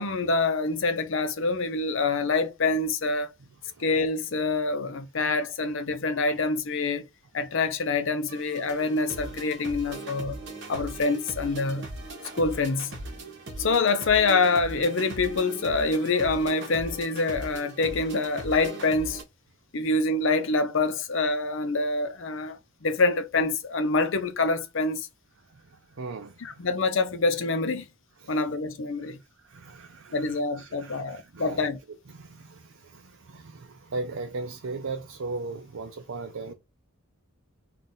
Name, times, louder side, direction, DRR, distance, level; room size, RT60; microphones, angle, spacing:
voice 1, 0.0-3.3 3.8-7.1 7.3-10.4 10.7-11.9 12.3-13.0 13.6-19.2 19.7-25.1 26.4-27.9 28.3-29.2 30.1-31.8, left 3 dB, 60° left, 0.6 m, -26 dB
sound 1, 8.3-19.2, right 2 dB, 55° right, 1.4 m, -39 dB
voice 2, 25.5-26.6 28.2-28.4 29.0-29.1 29.4-31.7 32.1-36.5, right 3 dB, 70° right, 0.6 m, -38 dB
3.9 x 2.5 x 3.8 m
head